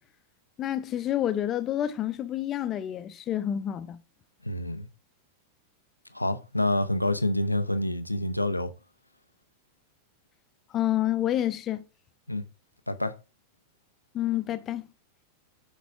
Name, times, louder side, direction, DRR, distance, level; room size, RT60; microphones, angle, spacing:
voice 1, 0.6-4.0 10.7-11.8 14.1-14.8, left 12 dB, 30° left, 0.8 m, -28 dB
voice 2, 4.4-4.9 6.1-8.7 12.3-12.4 12.9-13.2, left 1 dB, 85° left, 0.7 m, -27 dB
10.5 x 4.2 x 3.6 m
figure-of-eight pair, 90°, 0 cm